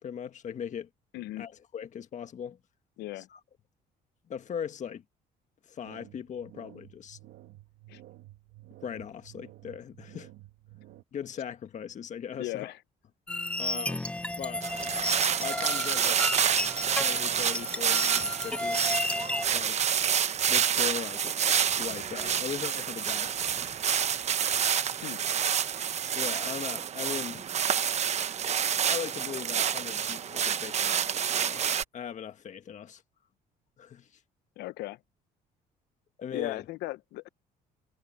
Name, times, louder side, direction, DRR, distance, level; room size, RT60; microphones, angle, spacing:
voice 1, 0.0-0.9 1.4-2.6 3.2-3.4 4.3-5.0 5.7-7.2 8.8-10.3 11.1-12.7 13.6-14.0 14.4-14.6 15.4-16.2 16.9-18.8 19.5-19.8 20.5-23.7 26.1-27.4 28.9-31.6 31.9-33.0 33.8-34.1 36.2-36.6, left 8 dB, 45° left, 1.5 m, -39 dB
voice 2, 1.1-1.5 3.0-3.3 7.9-8.0 12.4-12.8 25.0-25.2 34.6-35.0 36.3-37.3, left 17 dB, 80° left, 0.7 m, -37 dB
sound 1, 5.8-11.0, right 15 dB, 80° right, 2.1 m, -52 dB
sound 2, 13.3-19.5, left 1 dB, 5° left, 0.7 m, -32 dB
sound 3, 14.6-31.8, right 8 dB, 40° right, 0.9 m, -28 dB
cardioid pair, 110°, 17 cm